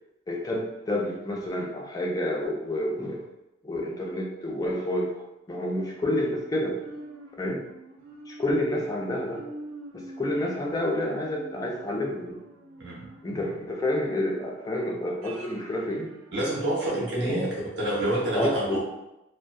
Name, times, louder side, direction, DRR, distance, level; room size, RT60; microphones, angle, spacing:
voice 1, 0.3-3.2 3.6-6.8 7.4-7.6 8.3-9.4 9.9-12.4 13.2-16.1 17.3-17.5 18.4-18.8, left 1 dB, 20° left, -1 dB, 0.3 m, -29 dB
sound 1, 5.7-17.2 17.6-17.7, right 2 dB, 85° right, 0.4 m, -47 dB
voice 2, 16.3-18.8, right 1 dB, 65° right, -6 dB, 0.8 m, -27 dB
2.6 x 2.1 x 2.3 m, 0.92 s
head